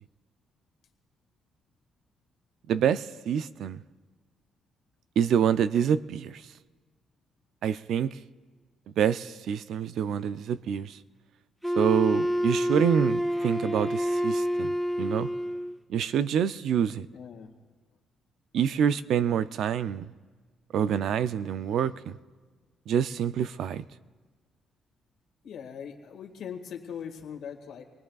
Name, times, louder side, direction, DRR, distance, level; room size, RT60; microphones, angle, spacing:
voice 1, 2.7-3.8 5.2-6.4 7.6-8.1 9.0-11.0 11.8-15.3 15.9-17.1 18.5-20.1 20.7-22.1 22.9-23.8, right 8 dB, 75° right, 0.4 m, -26 dB
Wind instrument woodwind instrument, 11.6-15.8, equal, ahead, 0.6 m, -28 dB
voice 2, 17.1-17.5 25.4-27.8, left 7 dB, 75° left, 1.8 m, -40 dB
26.5 x 19.0 x 2.4 m
cardioid pair, 90°, 0 cm